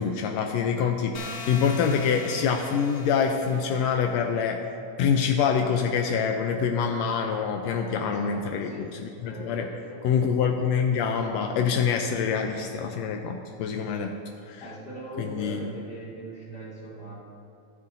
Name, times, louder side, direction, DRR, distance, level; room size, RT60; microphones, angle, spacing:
voice 1, 0.0-4.6 5.0-8.9 9.2-9.6 10.0-14.1 14.5-14.6 15.2-15.6, left 6 dB, 90° left, 3 dB, 1.5 m, -25 dB
sound 1, 1.1-4.0, left 3 dB, 70° left, 2.1 m, -41 dB
voice 2, 7.9-8.9 9.2-10.0 13.8-13.9 14.6-17.1, right 1 dB, 25° left, -7 dB, 1.9 m, -40 dB
13.5 x 9.5 x 2.6 m, 2.4 s
omnidirectional pair, 3.6 m